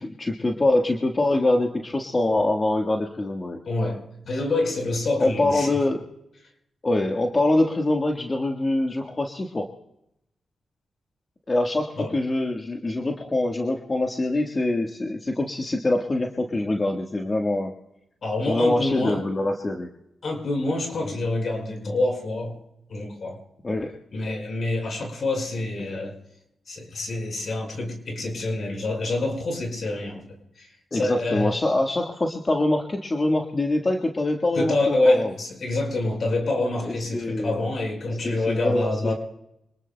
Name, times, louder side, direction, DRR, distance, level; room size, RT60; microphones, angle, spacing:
voice 1, 0.0-3.6 5.2-6.0 6.8-9.7 11.5-17.7 18.5-19.9 23.6-24.0 30.9-35.3 36.8-37.6 38.2-39.1, left 2 dB, 35° left, 1 dB, 1.5 m, -24 dB
voice 2, 3.6-5.7 12.0-12.1 18.2-19.2 20.2-22.6 22.9-23.4 24.1-26.2 26.7-30.2 30.6-31.5 34.5-39.1, left 2 dB, 65° left, 2 dB, 4.8 m, -26 dB
26.0 x 19.5 x 2.2 m, 0.80 s
cardioid pair, 60°, 0 cm